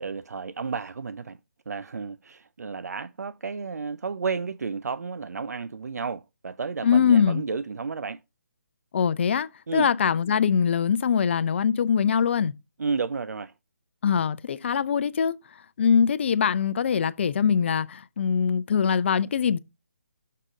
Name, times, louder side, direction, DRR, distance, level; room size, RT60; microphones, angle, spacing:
voice 1, 0.0-1.4 1.7-8.2 9.7-9.9 12.8-13.5, right 5 dB, 85° right, 0.4 m, -32 dB
voice 2, 6.8-7.4 8.9-12.5 14.0-15.3 15.8-19.6, left 7 dB, 45° left, 0.5 m, -23 dB
6.6 x 3.7 x 6.2 m
figure-of-eight pair, 155°, 9 cm